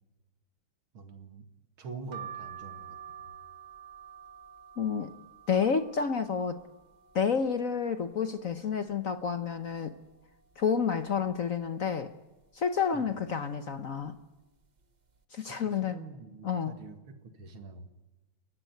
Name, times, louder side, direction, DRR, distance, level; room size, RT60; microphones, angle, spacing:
voice 1, 0.9-1.5 1.8-3.0 12.9-13.1 15.4-17.9, right 4 dB, 80° right, 7 dB, 2.9 m, -45 dB
sound 1, 2.1-7.8 8.2-9.0 9.4-9.5 9.7-10.8 11.3-11.7 12.4-12.8 13.5-13.8 14.0-14.2, right 9 dB, 45° right, 0.5 m, -48 dB
voice 2, 4.8-5.1 5.5-6.6 7.1-9.9 10.6-12.1 12.5-14.2 15.3-16.0 16.4-16.7, left 6 dB, 50° left, 10 dB, 1.1 m, -29 dB
29.5 x 15.5 x 9.3 m, 1.1 s
omnidirectional pair, 2.3 m